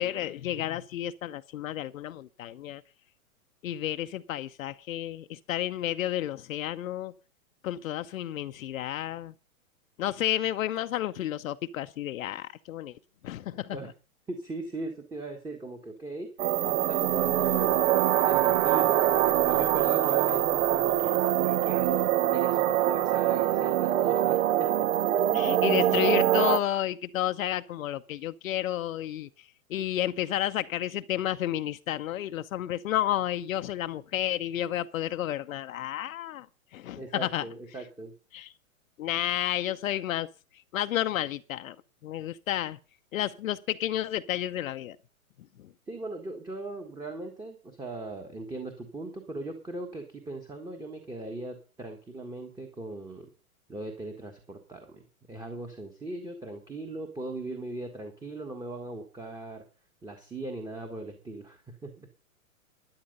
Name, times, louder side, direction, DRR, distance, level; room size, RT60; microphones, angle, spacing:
voice 1, 0.0-2.8 3.6-7.1 7.6-9.3 10.0-12.9 13.2-13.8 25.3-29.3 29.7-36.5 36.7-37.4 38.3-38.5 39.0-40.3 40.7-41.8 42.0-42.8 43.1-45.0, left 12 dB, 70° left, 0.7 m, -31 dB
voice 2, 14.3-16.3 16.7-17.9 18.2-19.1 19.4-22.1 22.3-24.9 37.0-38.1 45.9-53.3 53.7-59.6 60.0-62.1, right 2 dB, 10° right, 1.4 m, -39 dB
sound 1, 16.4-26.6, right 12 dB, 60° right, 0.9 m, -24 dB
12.0 x 10.5 x 5.3 m
hypercardioid pair, 125°, 42 cm